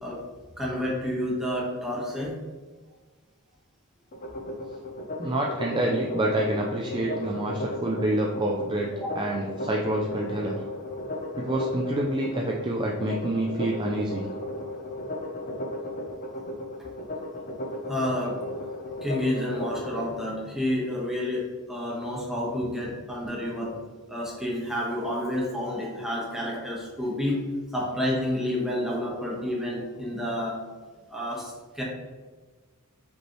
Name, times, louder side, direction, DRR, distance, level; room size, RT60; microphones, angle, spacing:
voice 1, 0.6-2.3 9.0-9.1 17.9-18.4 18.8-23.7 24.1-27.4 27.7-30.6 31.1-31.8, left 1 dB, ahead, -5 dB, 1.1 m, -29 dB
sound 1, 4.1-20.1, left 1 dB, 40° left, 0.6 m, -35 dB
voice 2, 5.2-10.6 11.4-14.2, right 1 dB, 20° right, -1 dB, 0.4 m, -27 dB
5.1 x 3.2 x 3.0 m, 1.4 s
head